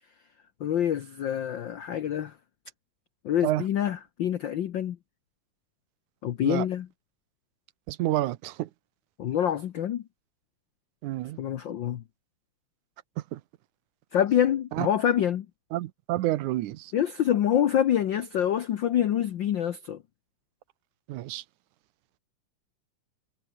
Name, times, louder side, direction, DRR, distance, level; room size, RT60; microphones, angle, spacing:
voice 1, 0.6-2.3 3.2-5.0 6.2-6.9 9.2-10.0 11.4-12.0 14.1-15.5 16.9-20.0, left 10 dB, 80° left, 1.0 m, -26 dB
voice 2, 7.9-8.7 11.0-11.4 13.2-13.4 14.7-14.9 15.7-16.9 21.1-21.4, right 15 dB, 85° right, 2.3 m, -29 dB
omnidirectional pair, 3.4 m